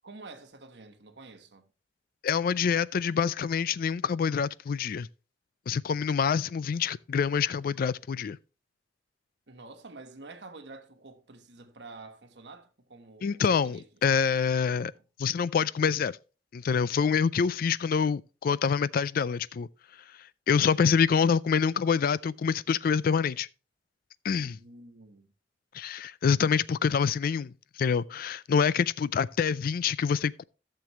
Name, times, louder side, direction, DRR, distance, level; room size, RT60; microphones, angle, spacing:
voice 1, 0.0-1.7 9.5-13.8 14.9-15.0 24.4-25.3, right 3 dB, 70° right, 1.3 m, -48 dB
voice 2, 2.2-5.1 5.7-8.4 13.2-14.9 15.2-16.2 16.5-19.7 20.5-23.5 24.2-24.6 25.7-30.4, left 6 dB, 55° left, 0.3 m, -26 dB
15.0 x 6.8 x 3.0 m
head